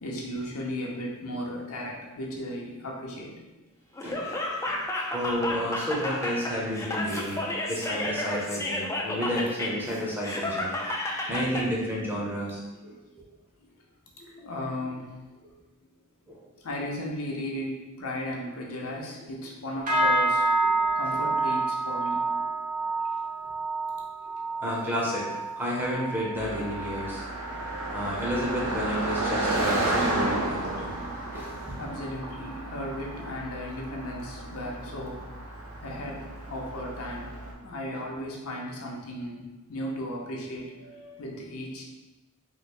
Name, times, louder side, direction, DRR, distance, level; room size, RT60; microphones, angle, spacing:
voice 1, 0.0-3.3 12.8-12.9 14.2-15.1 16.6-20.5 20.9-22.4 24.2-24.3 31.8-35.2 35.8-39.4 39.7-41.8, left 1 dB, 70° left, -2 dB, 0.6 m, -36 dB
Laughter, 4.0-11.7, left 1 dB, 15° left, 0.3 m, -31 dB
voice 2, 5.1-7.4 7.7-12.9 16.3-16.4 24.6-27.2 27.9-30.9 31.3-31.8 37.9-38.1, equal, 10° right, -5 dB, 0.7 m, -31 dB
sound 1, 19.9-29.4 29.7-30.2 30.6-30.9 31.4-31.5, right 2 dB, 40° right, 0.8 m, -29 dB
Car passing by, 26.4-37.5, right 1 dB, 70° right, 0.6 m, -32 dB
3.2 x 2.0 x 4.2 m, 1.1 s
head